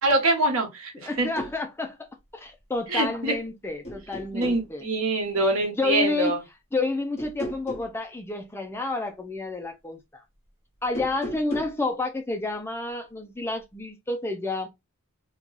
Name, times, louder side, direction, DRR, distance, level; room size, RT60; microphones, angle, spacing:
voice 1, 0.0-1.3 2.9-3.3 4.3-6.4, right 2 dB, 65° right, 1.2 m, -24 dB
voice 2, 0.9-2.0 2.3-4.8 5.8-6.4 6.7-10.0 10.8-14.7, left 2 dB, 10° left, 0.4 m, -30 dB
sound 1, 1.1-1.6 3.1-3.5 3.8-4.7 7.2-7.9 10.8-11.8, equal, 30° left, 1.3 m, -36 dB
3.0 x 2.2 x 3.9 m
head